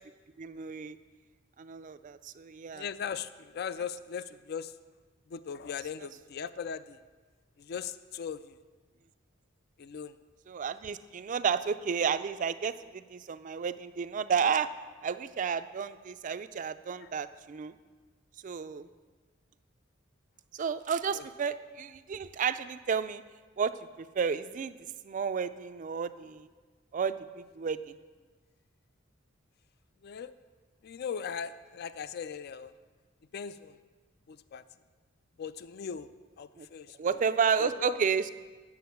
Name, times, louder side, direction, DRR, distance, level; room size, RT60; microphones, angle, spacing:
voice 1, 0.4-1.0 1.6-2.8 10.5-14.7 15.0-17.7 18.4-18.9 20.5-23.2 23.6-24.8 25.0-26.5 26.9-28.0 36.6-36.7 37.0-38.3, right 6 dB, 40° right, 12 dB, 0.3 m, -32 dB
voice 2, 2.7-4.8 5.3-7.0 7.6-8.6 9.8-10.2 17.0-17.1 21.1-21.3 30.0-30.3 30.8-32.7 33.3-33.8 34.3-34.6 35.4-37.3 37.6-38.0, left 7 dB, 50° left, 14 dB, 0.3 m, -39 dB
9.4 x 7.1 x 6.9 m, 1.4 s
head